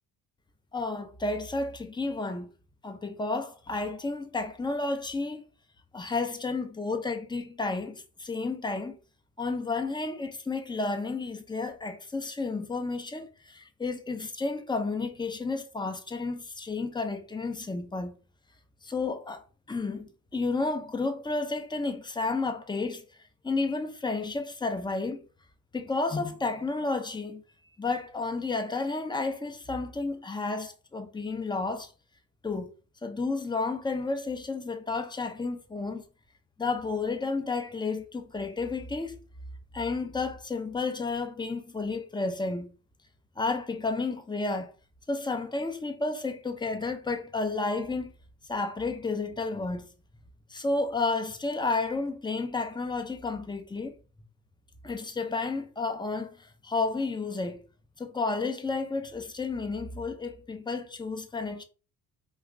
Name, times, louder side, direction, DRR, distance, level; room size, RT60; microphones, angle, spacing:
voice 1, 0.7-2.5 2.8-5.4 5.9-9.0 9.4-18.1 18.8-19.4 19.7-23.0 23.4-25.2 25.7-27.4 27.8-31.9 32.4-32.7 33.0-36.0 36.6-39.2 39.7-42.7 43.4-44.7 45.1-48.1 48.5-49.9 50.5-53.9 54.8-57.6 58.0-61.6, left 3 dB, 10° left, 0.6 m, -31 dB
2.9 x 2.3 x 3.7 m
hypercardioid pair, 60°, 46 cm